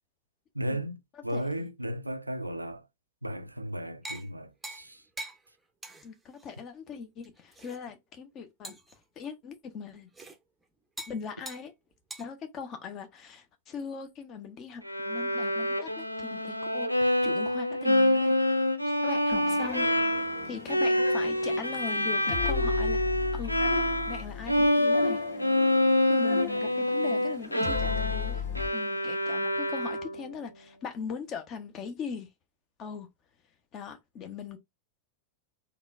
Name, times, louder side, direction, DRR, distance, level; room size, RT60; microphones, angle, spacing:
voice 1, 0.5-2.9 3.2-5.0, right 1 dB, 85° right, 0.3 m, -35 dB
voice 2, 1.3-1.7 6.0-8.8 9.2-10.1 11.1-11.7 12.2-19.9 20.4-23.0 23.3-23.5 24.1-25.2 26.1-28.5 28.7-32.3 32.8-33.1 33.7-34.6, left 6 dB, 35° left, 0.8 m, -40 dB
sound 1, 4.0-4.3 4.6-4.9 5.2-5.4 5.8-6.1 6.4-6.5 7.2-7.8 8.6-9.0 10.1-10.4 11.0-11.2 11.5-11.7 12.1-12.2, right 1 dB, 10° right, 0.6 m, -42 dB
Bowed string instrument, 14.8-24.2 24.5-30.3, left 1 dB, 85° left, 0.4 m, -27 dB
sound 2, 19.3-28.7, left 7 dB, 60° left, 1.2 m, -37 dB
3.7 x 2.3 x 2.5 m
figure-of-eight pair, 90°, 0 cm